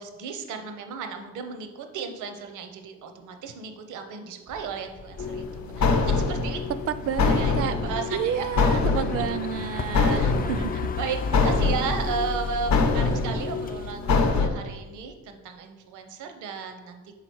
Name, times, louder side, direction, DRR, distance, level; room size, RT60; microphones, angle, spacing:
voice 1, 0.0-6.6 7.3-9.0 10.1-10.6 11.0-17.0, right 5 dB, 80° right, 6 dB, 0.7 m, -35 dB
sound 1, 4.5-13.9, left 4 dB, 30° left, 0.4 m, -37 dB
sound 2, 5.2-14.5, left 4 dB, 65° left, 0.8 m, -25 dB
voice 2, 6.9-7.7 8.1-10.2 10.5-10.7, right 9 dB, 50° right, 13 dB, 0.4 m, -29 dB
5.8 x 3.8 x 4.6 m, 1.2 s
cardioid pair, 90°, 30 cm